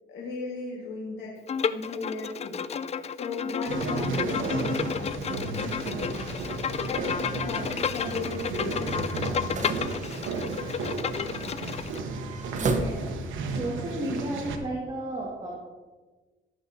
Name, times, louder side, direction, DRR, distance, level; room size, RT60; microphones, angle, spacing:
voice 1, 0.1-1.3 1.6-2.6 3.1-6.2 6.8-10.1, left 3 dB, 75° left, -4 dB, 1.7 m, -37 dB
Bowed string instrument, 1.5-12.0, left 7 dB, 35° left, 0.4 m, -32 dB
sound 1, 3.7-14.6, right 3 dB, 80° right, 1.0 m, -33 dB
sound 2, 9.3-13.5, right 3 dB, 40° right, 0.9 m, -37 dB
voice 2, 12.6-13.0 13.4-15.5, right 1 dB, 25° right, -4 dB, 2.0 m, -33 dB
14.0 x 7.3 x 2.7 m, 1.3 s
cardioid pair, 90°, 20 cm